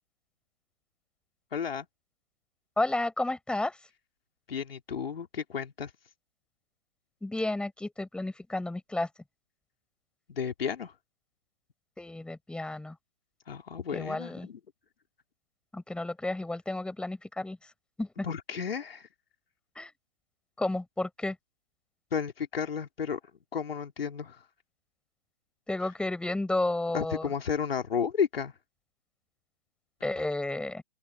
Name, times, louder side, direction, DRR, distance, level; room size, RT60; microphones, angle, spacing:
voice 1, 1.5-1.9 4.5-5.9 10.3-10.9 13.5-14.6 18.2-19.1 22.1-23.2 23.5-24.4 26.9-28.5, left 7 dB, 70° left, 3.3 m, -32 dB
voice 2, 2.8-3.8 7.2-9.1 12.0-13.0 13.9-14.5 15.7-17.6 18.0-18.3 19.8-19.9 20.6-21.4 25.7-27.3 30.0-30.8, left 2 dB, 5° left, 5.2 m, -32 dB
open air
hypercardioid pair, 140°, 31 cm